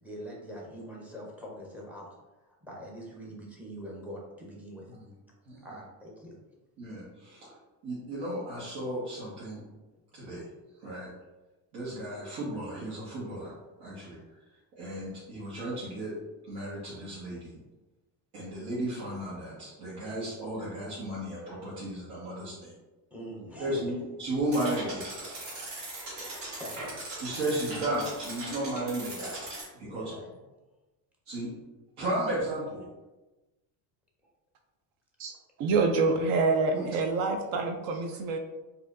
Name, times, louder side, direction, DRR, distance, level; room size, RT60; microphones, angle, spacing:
voice 1, 0.0-2.1 2.6-4.9 5.6-6.4 23.1-23.8 25.2-25.6 25.9-27.0 27.3-27.4 29.8-30.3, equal, 5° right, -2 dB, 0.5 m, -44 dB
voice 2, 6.8-7.5 7.8-9.6 10.1-10.4 10.8-11.1 11.7-13.5 13.8-14.2 14.8-16.1 16.5-17.6 18.3-22.7 23.6-23.9 24.2-25.1 27.2-29.4 29.7-30.0 31.3-31.5 32.0-32.8 36.7-36.9, right 1 dB, 80° right, -9 dB, 1.5 m, -34 dB
sound 1, 24.5-29.6, right 2 dB, 45° right, 1.1 m, -40 dB
voice 3, 35.6-38.4, right 3 dB, 60° right, 5 dB, 0.5 m, -26 dB
4.2 x 2.7 x 2.5 m, 1.1 s
cardioid pair, 150°, 40 cm